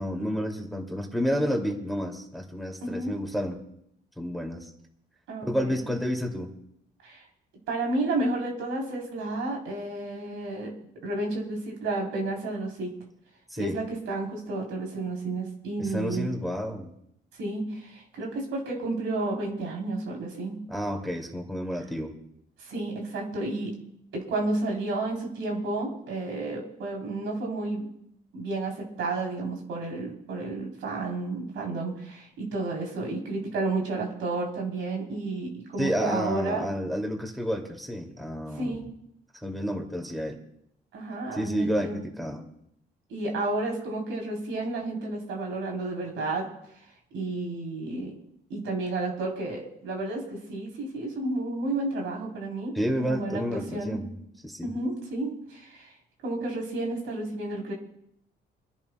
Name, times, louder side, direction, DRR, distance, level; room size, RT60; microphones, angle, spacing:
voice 1, 0.0-3.6 4.2-4.7 5.4-6.5 13.5-13.8 15.8-16.9 20.7-22.1 35.8-38.8 39.4-40.4 41.3-42.4 52.7-54.2 54.4-54.7, equal, ahead, 0 dB, 2.5 m, -30 dB
voice 2, 2.8-3.2 5.3-5.8 7.0-7.2 7.7-10.7 11.0-12.9 13.6-16.3 17.4-20.6 22.6-23.7 24.1-27.9 28.3-36.7 38.6-38.8 40.9-42.0 43.1-46.5 47.1-48.1 48.5-54.0 54.6-55.9 56.2-57.7, right 2 dB, 80° right, 0 dB, 3.7 m, -31 dB
30.0 x 10.5 x 2.3 m, 0.73 s
cardioid pair, 90°, 20 cm